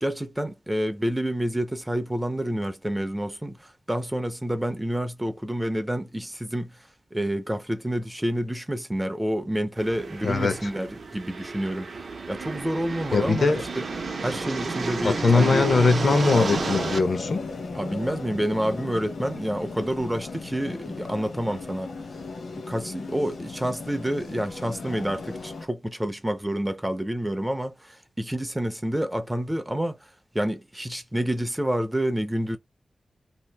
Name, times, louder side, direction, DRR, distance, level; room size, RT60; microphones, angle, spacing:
voice 1, 0.0-6.7 7.1-11.9 12.3-13.9 14.2-15.7 17.7-21.9 22.5-30.0 30.3-32.6, right 1 dB, 10° right, 0.4 m, -28 dB
sound 1, 9.8-17.0, right 4 dB, 55° right, 0.6 m, -31 dB
voice 2, 10.2-10.5 13.1-13.6 15.0-17.4, left 4 dB, 50° left, 0.5 m, -21 dB
sound 2, 12.4-25.6, left 3 dB, 70° left, 0.9 m, -37 dB
2.7 x 2.5 x 3.3 m
wide cardioid pair, 140°, 0 cm